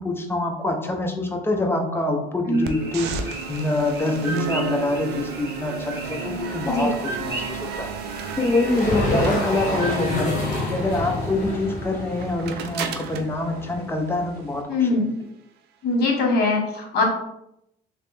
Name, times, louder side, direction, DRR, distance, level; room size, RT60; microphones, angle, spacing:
voice 1, 0.0-7.9 8.4-14.7, left 2 dB, 15° left, 3 dB, 0.6 m, -25 dB
sound 1, 2.5-10.0, right 1 dB, 15° right, 1.0 m, -37 dB
sound 2, 2.6-14.6, right 5 dB, 75° right, 0.4 m, -33 dB
sound 3, 8.6-14.2, left 2 dB, 50° left, 1.2 m, -28 dB
voice 2, 14.7-15.1 15.8-17.0, left 2 dB, 70° left, 2 dB, 1.1 m, -21 dB
3.2 x 2.9 x 3.3 m, 0.79 s
cardioid pair, 110°, 17 cm